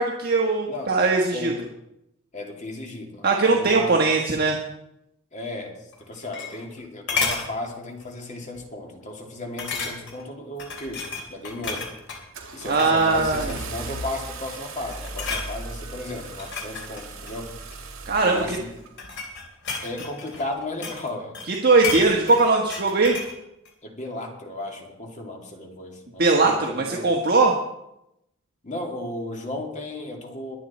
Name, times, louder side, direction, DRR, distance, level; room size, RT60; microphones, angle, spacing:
voice 1, 0.0-1.5 3.2-4.6 12.6-13.5 18.1-18.6 21.5-23.2 26.2-27.5, right 3 dB, 50° right, 0 dB, 1.4 m, -20 dB
voice 2, 2.3-4.1 5.3-5.8 6.1-11.9 12.5-17.5 18.2-18.7 19.8-21.4 21.8-22.3 23.8-27.2 28.6-30.6, left 1 dB, 35° left, 1 dB, 2.6 m, -35 dB
sound 1, 5.9-6.8 7.1-7.5 8.0-8.2 8.5-8.6 9.6-10.2 10.6-12.2 12.7-13.0 13.3-13.9 14.4-14.6 14.9-15.5 16.2-17.8 18.6-21.1 21.3-23.4 23.7-23.8, left 4 dB, 55° left, 3.1 m, -32 dB
Car / Engine starting, 11.2-11.5 12.0-18.9, right 3 dB, 70° right, 2.5 m, -38 dB
22.5 x 8.5 x 4.3 m, 0.85 s
head